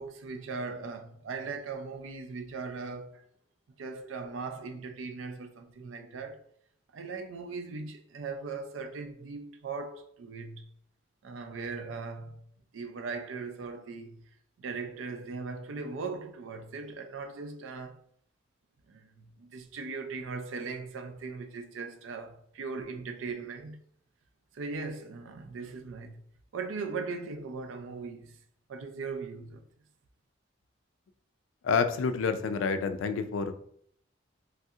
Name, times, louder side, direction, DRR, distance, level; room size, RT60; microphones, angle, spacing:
voice 1, 0.0-3.2 3.8-6.4 6.9-10.7 11.2-14.3 14.6-18.0 18.9-23.8 24.5-26.2 26.5-28.4 28.7-29.7, right 4 dB, 85° right, 0.4 m, -39 dB
voice 2, 31.6-33.5, left 5 dB, 85° left, 0.3 m, -28 dB
3.2 x 2.7 x 2.4 m
head